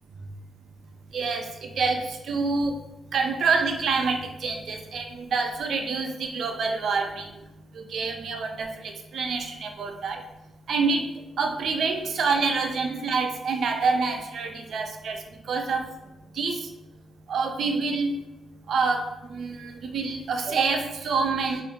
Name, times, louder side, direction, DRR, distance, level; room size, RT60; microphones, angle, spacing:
voice 1, 1.1-2.8 3.1-7.4 7.7-10.2 10.7-16.0 16.3-16.7 17.3-18.1 18.7-21.6, right 4 dB, 60° right, 4 dB, 0.4 m, -27 dB
2.6 x 2.5 x 3.6 m, 0.97 s
wide cardioid pair, 145°, 0 cm